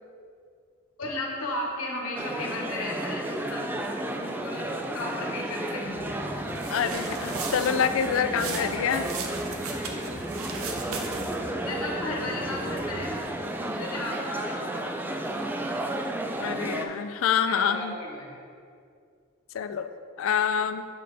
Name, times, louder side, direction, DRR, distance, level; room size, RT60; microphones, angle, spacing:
voice 1, 1.0-4.7 4.9-6.2 11.6-15.1 17.5-18.4, left 1 dB, 90° left, -1 dB, 1.2 m, -35 dB
sound 1, 2.1-16.8, right 1 dB, 10° right, 0.3 m, -32 dB
sound 2, 5.8-13.3, left 1 dB, 25° left, 1.0 m, -41 dB
sound 3, 6.5-11.5, right 5 dB, 85° right, 0.7 m, -37 dB
voice 2, 6.6-9.1 16.3-17.9 19.5-19.9 20.2-20.9, left 7 dB, 70° left, 10 dB, 0.3 m, -26 dB
7.0 x 5.3 x 3.9 m, 2.2 s
head